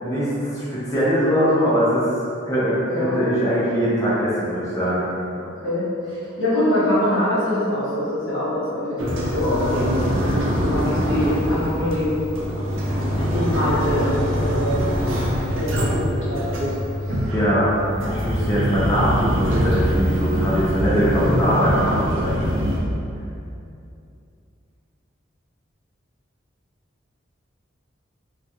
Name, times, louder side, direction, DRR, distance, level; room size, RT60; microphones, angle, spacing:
voice 1, 0.0-2.1 2.5-5.0 10.1-10.4 17.3-17.7 18.1-22.6, equal, 15° left, -10 dB, 0.5 m, -22 dB
voice 2, 2.8-3.2 5.4-12.2 13.1-14.8 15.5-16.8 17.0-17.3, left 1 dB, 75° left, -10 dB, 1.3 m, -24 dB
sound 1, 9.0-22.8, equal, 75° right, 0.5 m, -23 dB
3.3 x 2.3 x 2.8 m, 2.6 s
head